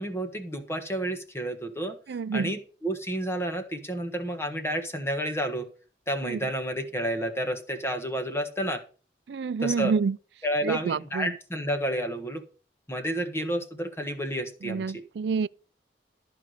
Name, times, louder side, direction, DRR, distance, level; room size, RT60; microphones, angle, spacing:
voice 1, 0.0-2.0 2.3-5.7 6.1-8.8 9.6-9.9 10.4-12.4 12.9-14.8, right 1 dB, 15° left, 1.4 m, -30 dB
voice 2, 2.1-2.5 6.2-6.4 9.3-10.2 10.6-11.3 14.6-15.5, right 5 dB, 75° right, 0.4 m, -28 dB
13.5 x 4.7 x 6.6 m
head